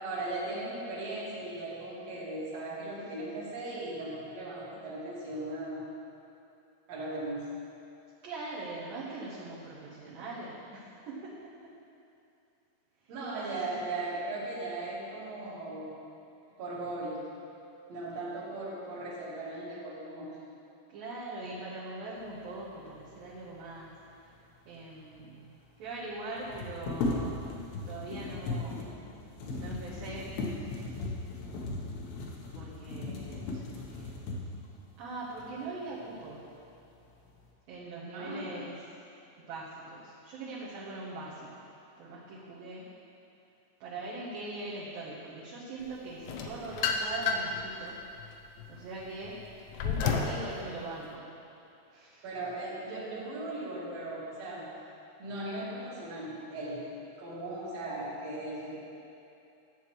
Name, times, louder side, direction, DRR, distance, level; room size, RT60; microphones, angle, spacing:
voice 1, 0.0-5.9 6.9-7.5 13.1-16.0 16.6-17.2 17.9-20.4 38.1-38.5 52.2-54.7 55.2-56.9 57.2-58.8, right 2 dB, 45° right, -8 dB, 2.3 m, -38 dB
voice 2, 8.2-11.7 20.9-23.9 24.2-24.3 24.7-25.4 25.8-27.3 27.9-29.0 29.5-30.2 30.5-30.9 32.5-34.2 35.0-36.4 37.7-38.7 39.5-41.5 42.0-42.9 43.8-48.2 48.7-49.4 49.8-51.3 51.9-52.2, right 2 dB, 70° right, -9 dB, 2.3 m, -41 dB
sound 1, 24.9-25.0 25.1-25.2 26.3-34.7 35.4-35.5 35.9-36.6 36.9-37.5, left 2 dB, 70° left, 2.7 m, -37 dB
sound 2, 46.3-47.6 48.2-50.4, left 6 dB, 90° left, 3.3 m, -31 dB
13.5 x 7.9 x 3.1 m, 2.7 s
omnidirectional pair, 5.6 m